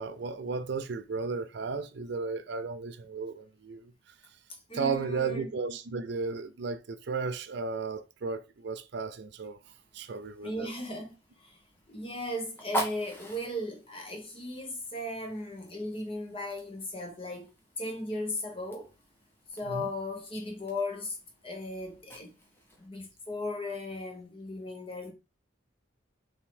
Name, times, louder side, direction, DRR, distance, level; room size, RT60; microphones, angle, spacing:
voice 1, 0.0-3.9 4.7-9.6 9.9-10.7 19.7-19.9, right 4 dB, 55° right, 0.4 m, -34 dB
voice 2, 4.7-5.5 10.4-11.6 11.9-17.5 17.8-18.9 19.5-21.2 21.4-22.3 22.8-25.1, left 1 dB, 30° left, 1.1 m, -37 dB
Fire, 9.6-22.9, equal, 10° left, 1.0 m, -44 dB
3.6 x 3.0 x 4.4 m
head